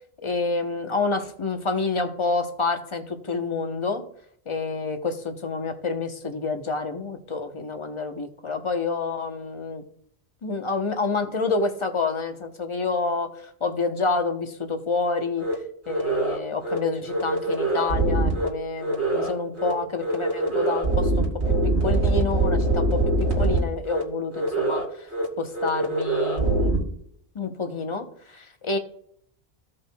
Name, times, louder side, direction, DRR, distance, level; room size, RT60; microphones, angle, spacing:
voice 1, 0.2-4.1 4.5-9.8 10.4-13.3 13.6-15.5 15.9-21.3 21.6-25.1 25.4-26.8 27.3-28.8, left 4 dB, 30° left, 6 dB, 0.9 m, -28 dB
sound 1, 15.4-15.5 15.9-16.4 16.6-16.8 17.1-18.5 18.8-19.3 19.6-19.7 20.0-23.6 23.9-24.0 24.3-24.8 25.1-25.2 25.5-26.8, right 2 dB, 80° right, 2.5 m, -23 dB
16.0 x 5.4 x 2.3 m, 0.66 s
omnidirectional pair, 1.1 m